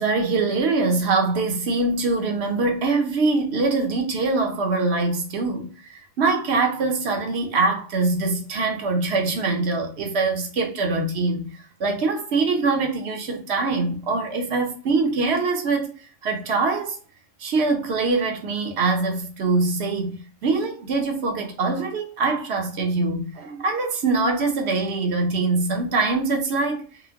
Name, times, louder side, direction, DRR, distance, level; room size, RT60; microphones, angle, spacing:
voice 1, 0.0-15.9 16.2-17.0 17.4-26.8, right 3 dB, 60° right, 0.9 m, -23 dB
4.1 x 2.1 x 2.8 m
omnidirectional pair, 1.3 m